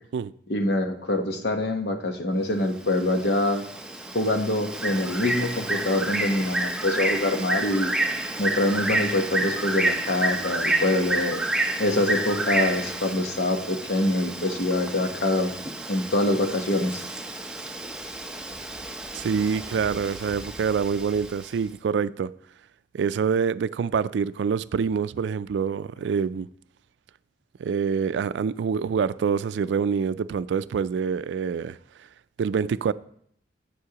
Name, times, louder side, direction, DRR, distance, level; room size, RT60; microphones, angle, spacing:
voice 1, 0.5-3.6 4.1-7.9 8.4-11.4 11.8-15.5 15.9-17.0, left 1 dB, 65° left, 1.0 m, -25 dB
Bird, 2.7-21.5, right 2 dB, 5° right, 0.6 m, -30 dB
voice 2, 19.1-22.3 22.9-26.5 27.6-31.8 32.4-32.9, right 6 dB, 90° right, 0.3 m, -26 dB
11.0 x 8.5 x 2.9 m
head